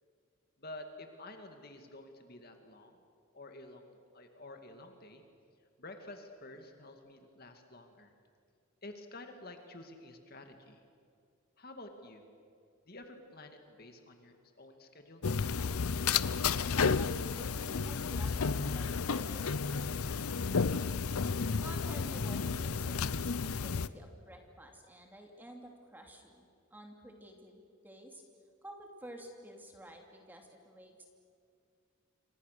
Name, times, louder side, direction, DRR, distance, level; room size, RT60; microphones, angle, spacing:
voice 1, 0.6-3.0 3.3-5.2 5.8-8.1 8.8-10.8 11.6-12.2 12.9-15.2, left 2 dB, 45° left, 5 dB, 2.2 m, -50 dB
sound 1, 15.2-23.9, left 5 dB, 80° left, 0.7 m, -32 dB
voice 2, 17.0-20.8 21.6-26.5 26.7-28.2 28.6-31.1, equal, 10° right, 2 dB, 2.7 m, -51 dB
29.0 x 25.5 x 6.7 m, 2.4 s
head